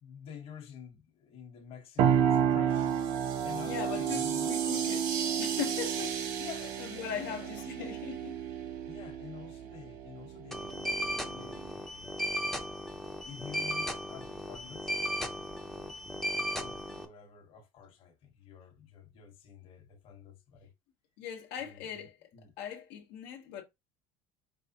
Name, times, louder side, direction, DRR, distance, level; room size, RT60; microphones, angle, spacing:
voice 1, 0.0-3.1 3.4-4.6 6.4-7.9 8.9-10.8 11.2-12.2 13.2-14.9 15.6-16.0 16.3-20.7 21.6-22.1 22.3-22.5, left 7 dB, 40° left, 1.2 m, -49 dB
sound 1, 2.0-11.7, right 8 dB, 45° right, 0.5 m, -32 dB
sound 2, 2.7-8.6, right 7 dB, 75° right, 1.3 m, -39 dB
voice 2, 3.6-6.5 6.8-8.4 21.2-22.3 22.6-23.6, left 9 dB, 80° left, 1.0 m, -40 dB
sound 3, 10.5-17.0, equal, ahead, 0.5 m, -36 dB
4.7 x 3.4 x 2.8 m
cardioid pair, 160°, 14 cm